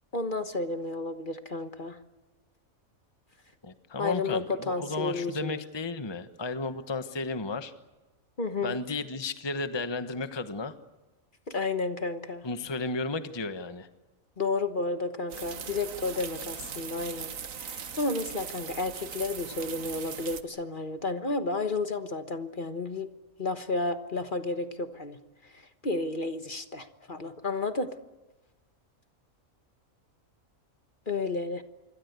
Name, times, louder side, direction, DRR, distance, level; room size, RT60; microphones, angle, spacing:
voice 1, 0.1-2.0 4.0-5.5 8.4-8.8 11.5-12.4 14.4-17.3 17.6-23.1 23.4-28.0 31.1-31.6, left 3 dB, 40° left, 9 dB, 1.4 m, -32 dB
voice 2, 3.6-7.7 8.6-10.8 12.4-13.9, left 3 dB, 20° left, 9 dB, 1.1 m, -33 dB
sound 1, 15.3-20.4, right 7 dB, 70° right, 1.6 m, -40 dB
26.5 x 24.0 x 8.2 m, 1.1 s
omnidirectional pair, 1.4 m